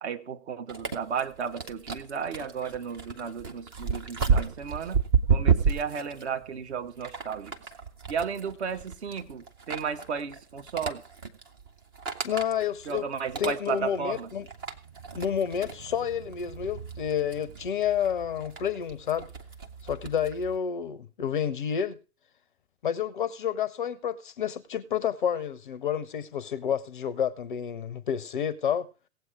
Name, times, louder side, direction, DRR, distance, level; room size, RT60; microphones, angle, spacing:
voice 1, 0.0-5.0 5.3-7.5 8.1-11.0 12.9-14.3, right 6 dB, 45° right, 1.2 m, -34 dB
sound 1, 0.7-20.6, right 6 dB, 15° right, 0.5 m, -32 dB
voice 2, 12.2-13.1 13.4-14.5 15.1-19.3 19.8-22.0 22.8-28.9, left 8 dB, 35° left, 0.6 m, -29 dB
17.0 x 7.9 x 4.6 m
figure-of-eight pair, 115°, 45 cm